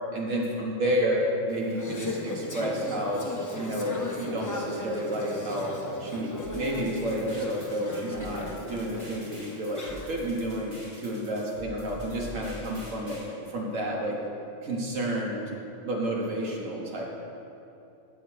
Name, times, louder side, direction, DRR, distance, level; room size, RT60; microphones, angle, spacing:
voice 1, 0.1-3.2 3.5-5.7 6.0-13.2 13.5-14.2 14.6-15.5 15.8-17.0, equal, 80° right, -2 dB, 1.7 m, -30 dB
Conversation / Chatter, 1.5-10.4, left 1 dB, 20° left, 0.5 m, -37 dB
sound 1, 6.4-13.3, right 1 dB, 30° right, 2.2 m, -45 dB
8.0 x 7.3 x 4.6 m, 2.8 s
omnidirectional pair, 1.3 m